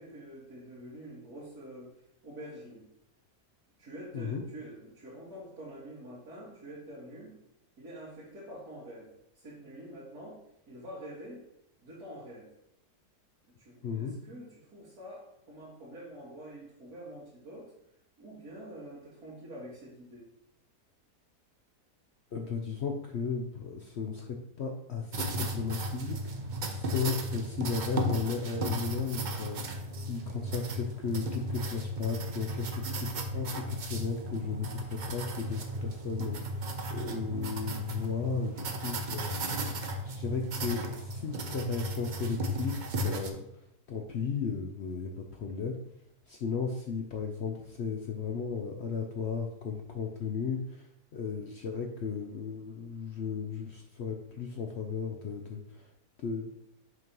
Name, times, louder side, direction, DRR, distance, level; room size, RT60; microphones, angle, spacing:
voice 1, 0.0-2.0 2.2-2.9 3.8-7.4 7.8-10.4 10.7-11.4 11.8-12.5 13.6-17.7 18.2-20.3, right 1 dB, 65° right, -10 dB, 2.3 m, -46 dB
voice 2, 13.8-14.1 22.3-32.7 32.9-43.6 43.9-45.7 46.3-55.9 56.2-56.5, left 5 dB, 70° left, 3 dB, 0.6 m, -35 dB
sound 1, 25.1-43.3, right 1 dB, 80° right, 0.4 m, -35 dB
6.1 x 3.0 x 5.2 m, 0.77 s
omnidirectional pair, 1.7 m